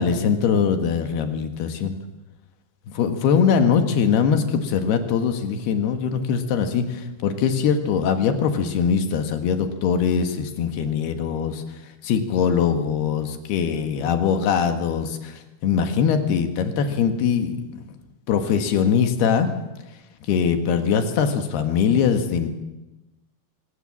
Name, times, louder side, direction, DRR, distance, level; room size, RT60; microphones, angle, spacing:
voice 1, 0.0-2.0 2.9-11.6 12.0-17.9 18.3-19.5 20.3-22.5, left 7 dB, 75° left, 7 dB, 3.6 m, -22 dB
24.5 x 18.5 x 7.5 m, 1.0 s
omnidirectional pair, 4.7 m